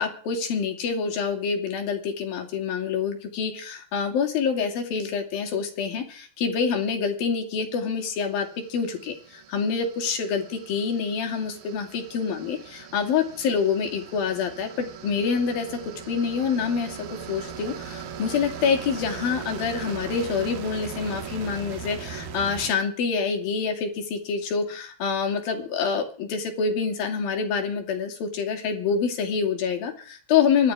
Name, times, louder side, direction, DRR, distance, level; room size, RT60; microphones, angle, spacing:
voice 1, 0.0-15.8 16.1-17.0 17.3-30.7, left 6 dB, 75° left, 4 dB, 4.5 m, -26 dB
sound 1, 8.0-22.7, right 7 dB, 75° right, 3.6 m, -39 dB
25.5 x 11.5 x 4.9 m, 0.41 s
omnidirectional pair, 4.2 m